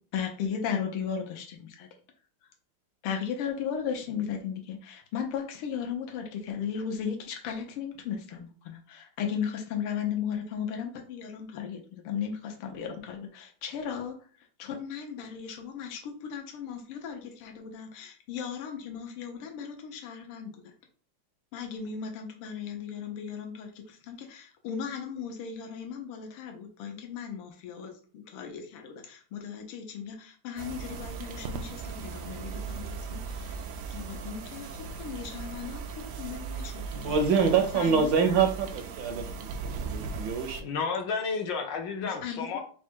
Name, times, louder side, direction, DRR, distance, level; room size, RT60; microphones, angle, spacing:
voice 1, 0.1-1.9 3.0-14.3 14.6-20.7 21.5-37.2 37.7-38.1 38.7-38.8 42.0-42.6, left 7 dB, 90° left, 1.7 m, -36 dB
sound 1, 30.6-40.6, right 5 dB, 90° right, 0.9 m, -38 dB
voice 2, 36.9-39.5 39.8-40.7, right 5 dB, 75° right, 1.2 m, -25 dB
voice 3, 40.6-42.6, left 5 dB, 70° left, 1.2 m, -31 dB
4.4 x 2.2 x 4.4 m
omnidirectional pair, 2.3 m